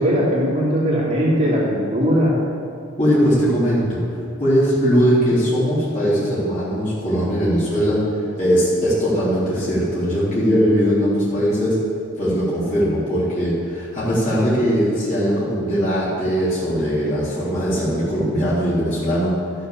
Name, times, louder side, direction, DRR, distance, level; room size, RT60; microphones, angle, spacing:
voice 1, 0.0-2.4, equal, 30° right, -7 dB, 2.9 m, -19 dB
voice 2, 3.0-4.0 4.4-8.0 8.4-11.8 12.2-19.3, equal, 35° left, -10 dB, 3.6 m, -20 dB
13.0 x 6.9 x 7.6 m, 2.5 s
head